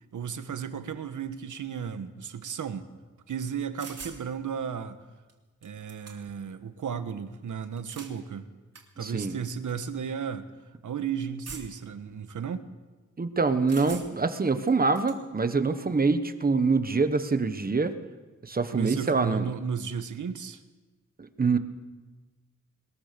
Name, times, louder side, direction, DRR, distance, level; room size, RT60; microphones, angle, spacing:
voice 1, 0.1-2.9 3.3-5.0 5.6-8.5 9.0-10.5 10.8-12.7 18.7-20.6, right 7 dB, 90° right, 10 dB, 1.4 m, -34 dB
sound 1, 3.8-4.2 5.3-5.4 5.6-6.4 7.6-8.2 8.7-8.9 9.7-9.8 11.5-11.9 13.7-14.3 14.7-15.2, right 5 dB, 55° right, 3.2 m, -43 dB
voice 2, 9.0-9.4 13.2-17.9 18.4-19.5 21.2-21.6, right 4 dB, 30° right, 10 dB, 1.3 m, -25 dB
21.5 x 20.5 x 6.9 m, 1.3 s
wide cardioid pair, 150°, 30 cm